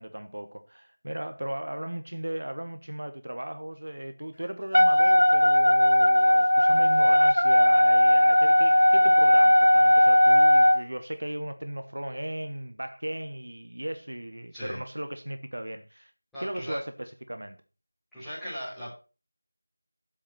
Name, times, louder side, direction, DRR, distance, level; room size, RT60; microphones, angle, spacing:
voice 1, 0.0-16.1 16.4-17.6, right 1 dB, 65° right, 1.2 m, -36 dB
Wind instrument woodwind instrument, 4.7-10.8, left 1 dB, 80° left, 0.8 m, -18 dB
voice 2, 16.3-16.8 18.1-18.9, equal, ahead, 5.0 m, -37 dB
7.7 x 7.2 x 6.6 m
figure-of-eight pair, 170°, 0 cm